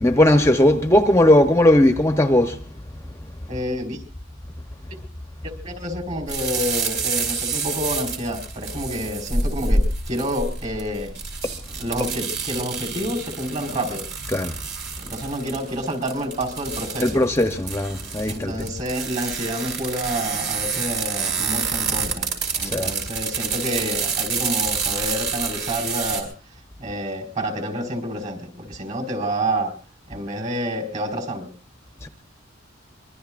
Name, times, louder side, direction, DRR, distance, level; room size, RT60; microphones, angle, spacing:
voice 1, 0.0-2.6 14.3-14.5 17.0-18.5 22.6-22.9 32.0-32.1, left 1 dB, 15° left, 0.8 m, -17 dB
voice 2, 3.5-4.0 5.6-11.1 11.8-14.0 15.0-17.2 18.3-22.3 22.6-26.3 26.8-29.7 30.1-31.5, equal, 40° right, 4.8 m, -28 dB
sound 1, 6.3-26.2, right 4 dB, 60° right, 5.0 m, -27 dB
25.0 x 23.0 x 2.5 m
head